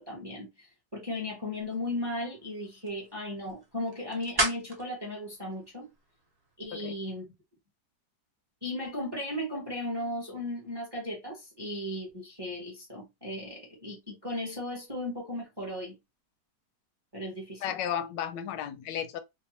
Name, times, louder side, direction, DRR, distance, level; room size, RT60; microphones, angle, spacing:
voice 1, 0.0-5.9 6.6-7.2 8.6-16.0 17.1-17.7, left 1 dB, 20° right, 0.8 m, -36 dB
sound 1, 1.4-6.6, right 2 dB, 40° right, 0.3 m, -37 dB
voice 2, 17.6-19.2, left 9 dB, 85° left, 1.2 m, -33 dB
3.2 x 2.2 x 2.8 m
omnidirectional pair, 1.9 m